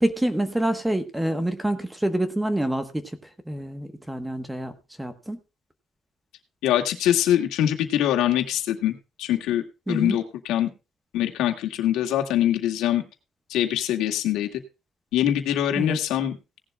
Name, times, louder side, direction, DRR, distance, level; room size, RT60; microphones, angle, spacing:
voice 1, 0.0-3.1 3.5-5.4 9.9-10.2 15.8-16.0, right 1 dB, 5° right, 9 dB, 1.1 m, -27 dB
voice 2, 6.6-9.6 9.9-10.7 11.1-13.0 13.5-14.5 15.1-16.4, left 11 dB, 85° left, 3 dB, 2.0 m, -23 dB
17.5 x 11.5 x 2.3 m, 0.28 s
cardioid pair, 165°, 0 cm